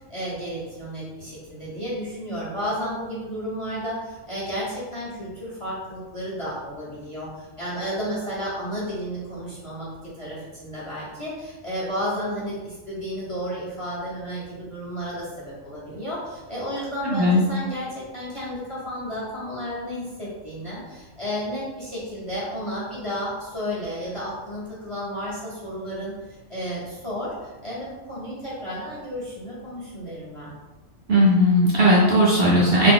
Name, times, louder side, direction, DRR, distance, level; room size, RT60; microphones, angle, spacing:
voice 1, 0.1-30.5, equal, 30° left, -7 dB, 0.6 m, -32 dB
voice 2, 17.0-17.4 31.1-32.9, equal, 60° right, -5 dB, 0.7 m, -17 dB
2.6 x 2.5 x 3.6 m, 1.2 s
omnidirectional pair, 1.4 m